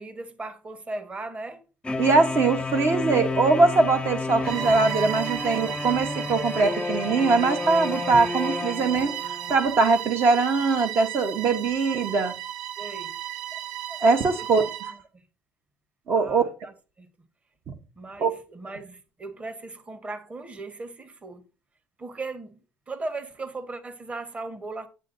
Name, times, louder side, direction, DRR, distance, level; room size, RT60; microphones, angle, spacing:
voice 1, 0.0-1.6 12.8-13.1 14.3-14.5 14.9-15.2 16.2-17.1 18.0-21.4 22.0-22.6 22.9-24.9, right 3 dB, 20° right, 1.1 m, -37 dB
sound 1, 1.8-9.6, left 3 dB, 15° left, 0.6 m, -31 dB
voice 2, 2.0-12.3 14.0-14.7 16.1-16.5 17.7-17.8 18.2-18.3, right 4 dB, 45° right, 1.0 m, -22 dB
Bowed string instrument, 4.4-15.0, right 11 dB, 75° right, 0.7 m, -35 dB
9.5 x 7.6 x 2.6 m
supercardioid pair, 100°, 6 cm